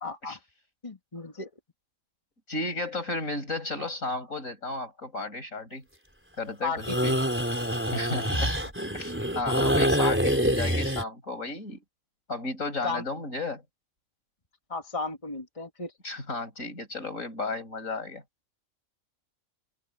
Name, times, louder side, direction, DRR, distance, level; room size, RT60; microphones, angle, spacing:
voice 1, 0.0-0.4 0.8-1.5 6.6-7.1 9.9-10.1 12.8-13.0 14.7-15.9, left 3 dB, 25° left, 2.4 m, -34 dB
voice 2, 2.5-5.8 6.4-7.2 7.9-8.6 8.9-11.8 12.3-13.6 16.0-18.2, left 2 dB, 80° left, 7.1 m, -33 dB
sound 1, 6.8-11.0, equal, 10° right, 4.5 m, -26 dB
open air
omnidirectional pair, 1.4 m